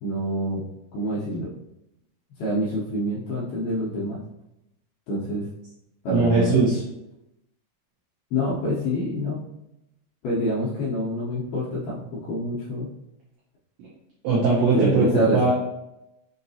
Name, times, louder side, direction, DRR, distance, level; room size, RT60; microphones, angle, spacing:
voice 1, 0.0-0.6 0.9-1.5 2.4-4.2 5.1-5.5 6.0-6.6 8.3-9.4 10.2-12.9 14.7-15.5, equal, 75° left, -7 dB, 2.3 m, -26 dB
voice 2, 6.1-6.8 13.8-13.9 14.2-15.1 15.3-15.5, right 3 dB, 80° right, -6 dB, 2.0 m, -20 dB
6.8 x 2.9 x 2.7 m, 0.89 s
omnidirectional pair, 5.4 m